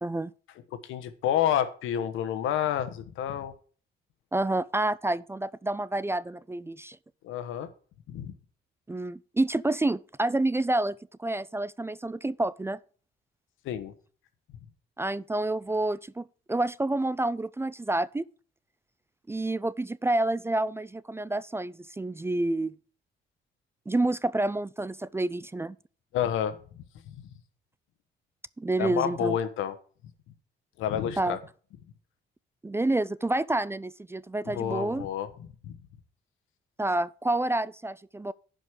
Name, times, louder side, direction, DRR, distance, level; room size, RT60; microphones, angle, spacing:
voice 1, 0.0-0.3 4.3-7.0 8.9-12.8 15.0-18.2 19.3-22.8 23.9-25.8 28.6-29.4 31.2-31.4 32.6-35.1 36.8-38.3, right 2 dB, 10° right, 0.3 m, -28 dB
voice 2, 0.8-3.5 7.2-7.7 8.1-8.3 13.6-13.9 26.1-26.6 27.1-27.3 28.8-29.7 30.8-31.4 34.4-35.8, left 10 dB, 90° left, 1.2 m, -29 dB
10.5 x 5.3 x 6.5 m
cardioid pair, 90°, 20 cm